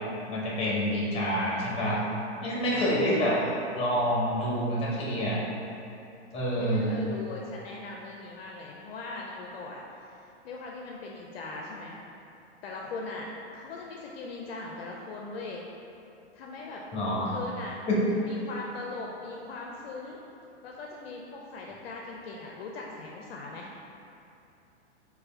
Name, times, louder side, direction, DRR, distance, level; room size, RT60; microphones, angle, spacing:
voice 1, 0.3-2.0 2.4-3.3 3.7-5.4 6.3-7.0 16.9-17.3 17.9-18.0, equal, 15° left, -5 dB, 0.8 m, -27 dB
voice 2, 3.1-3.5 6.5-12.0 12.6-13.3 13.5-15.6 16.3-16.8 17.3-17.8 18.1-20.2 20.6-23.7, left 3 dB, 55° left, -1 dB, 0.4 m, -40 dB
3.3 x 2.2 x 4.2 m, 2.7 s
hypercardioid pair, 130°, 36 cm